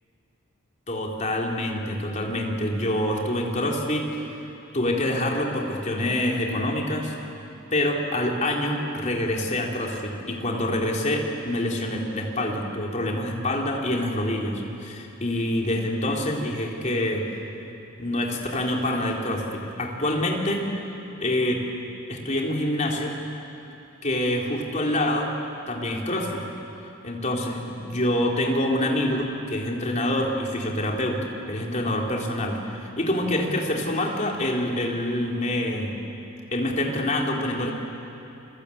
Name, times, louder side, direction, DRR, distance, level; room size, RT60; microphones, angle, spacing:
voice 1, 0.9-4.1 4.7-7.2 7.7-17.4 18.0-20.7 21.2-21.6 22.1-23.2 24.0-25.4 25.7-26.4 27.0-31.2 31.5-35.9 36.5-37.7, left 1 dB, 35° left, -1 dB, 3.7 m, -26 dB
29.5 x 23.5 x 8.6 m, 2.9 s
head